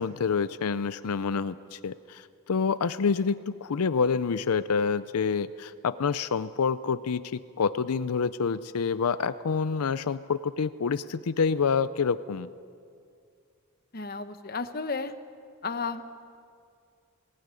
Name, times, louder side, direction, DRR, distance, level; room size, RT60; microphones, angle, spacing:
voice 1, 0.0-12.5, left 5 dB, 85° left, 14 dB, 0.5 m, -27 dB
voice 2, 13.9-15.1 15.6-16.1, left 4 dB, 40° left, 9 dB, 1.0 m, -33 dB
20.0 x 17.0 x 9.7 m, 2.3 s
head